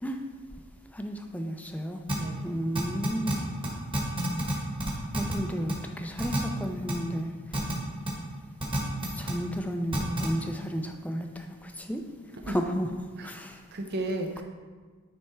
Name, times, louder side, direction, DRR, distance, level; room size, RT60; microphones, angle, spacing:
voice 1, 0.9-2.0 2.4-3.4 5.1-7.3 9.1-12.0 12.4-12.9 13.2-13.6, equal, 5° left, 4 dB, 0.4 m, -32 dB
sound 1, 2.1-2.2 2.8-3.3 3.6-3.7 3.9-4.5 4.8-5.3 5.7-5.8 6.2-6.4 6.9-7.0 7.5-7.7 8.1-8.2 8.6-9.3 9.9-10.3, right 1 dB, 25° right, 1.3 m, -28 dB
voice 2, 2.1-2.5 12.5-12.6 13.2-13.3 13.7-14.4, right 1 dB, 50° right, 4 dB, 0.6 m, -33 dB
9.5 x 3.4 x 4.3 m, 1.5 s
head